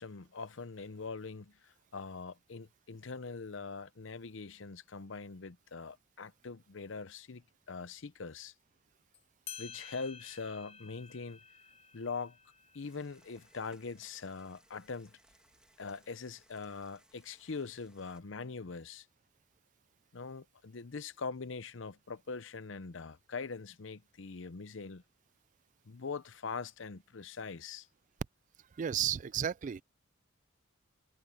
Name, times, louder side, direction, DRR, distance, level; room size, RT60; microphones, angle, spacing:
voice 1, 0.0-8.5 9.6-11.4 11.9-12.4 12.7-15.2 15.8-19.1 20.1-25.0 25.9-27.9, left 4 dB, 65° left, 0.7 m, -42 dB
sound 1, 9.1-9.2 9.5-14.6, left 8 dB, 30° left, 0.6 m, -52 dB
sound 2, 12.8-18.2, right 1 dB, 5° right, 1.4 m, -67 dB
voice 2, 28.8-29.8, right 9 dB, 40° right, 0.3 m, -33 dB
head